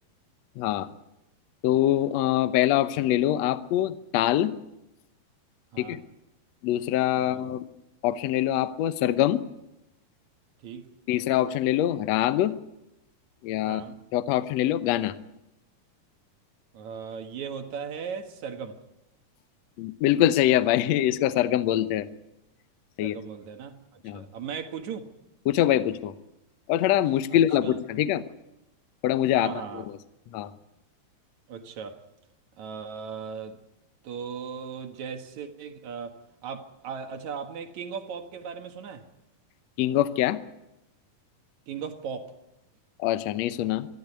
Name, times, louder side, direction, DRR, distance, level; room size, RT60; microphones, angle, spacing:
voice 1, 0.6-0.9 1.6-4.5 5.8-6.0 6.6-7.6 8.0-9.4 11.1-12.5 13.4-13.8 14.1-15.1 19.8-22.1 23.0-23.1 24.0-24.2 25.5-26.1 26.7-28.2 29.0-29.5 30.3-30.5 39.8-40.4 43.0-43.9, left 12 dB, 85° left, 1.5 m, -24 dB
voice 2, 16.7-18.8 23.0-25.0 27.3-27.8 29.3-29.9 31.5-32.0 32.6-33.6 34.0-39.1 41.7-42.3, right 6 dB, 55° right, 2.5 m, -37 dB
23.5 x 14.0 x 9.5 m
omnidirectional pair, 4.4 m